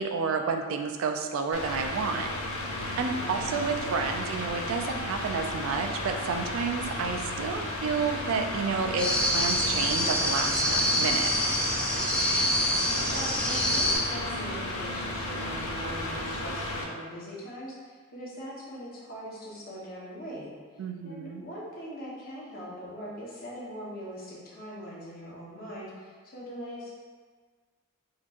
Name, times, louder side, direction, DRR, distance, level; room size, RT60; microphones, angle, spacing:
voice 1, 0.0-2.3 3.0-11.3 20.8-21.4, right 5 dB, 70° right, 5 dB, 0.3 m, -30 dB
Mechanical fan, 1.5-16.8, left 1 dB, 90° left, 0.5 m, -34 dB
voice 2, 3.1-3.6 12.2-20.5 21.0-26.9, equal, 45° left, -6 dB, 0.9 m, -41 dB
sound 1, 9.0-14.0, equal, 5° left, 0.4 m, -26 dB
4.3 x 2.8 x 2.4 m, 1.5 s
head